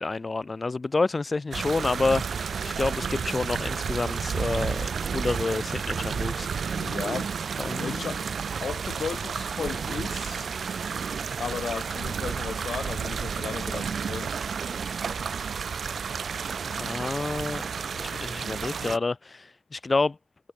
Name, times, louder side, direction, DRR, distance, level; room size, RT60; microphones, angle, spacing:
voice 1, 0.0-6.8 7.6-8.1 16.8-17.6 17.9-20.2, left 3 dB, 35° left, 1.4 m, -29 dB
sound 1, 1.5-19.0, right 6 dB, 80° right, 0.3 m, -31 dB
voice 2, 6.8-7.3 7.8-8.2 8.6-10.5 11.4-14.3, left 6 dB, 85° left, 4.1 m, -35 dB
wide cardioid pair, 105°, 0 cm